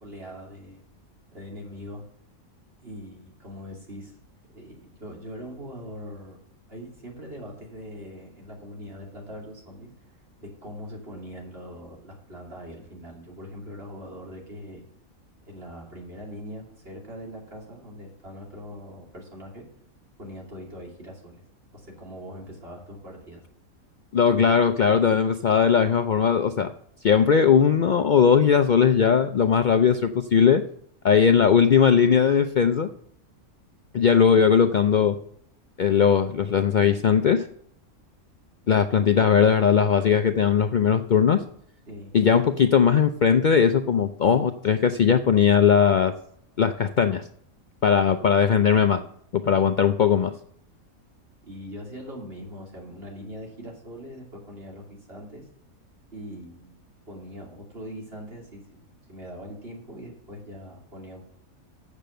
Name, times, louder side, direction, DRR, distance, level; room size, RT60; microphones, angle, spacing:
voice 1, 0.0-0.8 1.3-2.1 2.8-4.2 4.5-6.4 6.7-14.9 15.5-19.6 20.2-21.4 21.7-23.4 41.9-42.1 51.4-55.5 56.1-61.2, equal, 45° right, -1 dB, 3.1 m, -41 dB
voice 2, 24.1-26.7 27.0-30.6 31.0-32.9 33.9-35.2 35.8-37.5 38.7-41.4 42.1-46.1 46.6-47.2 47.8-49.0 49.3-50.3, left 7 dB, 85° left, 8 dB, 0.4 m, -19 dB
7.3 x 6.8 x 7.7 m, 0.65 s
omnidirectional pair, 1.5 m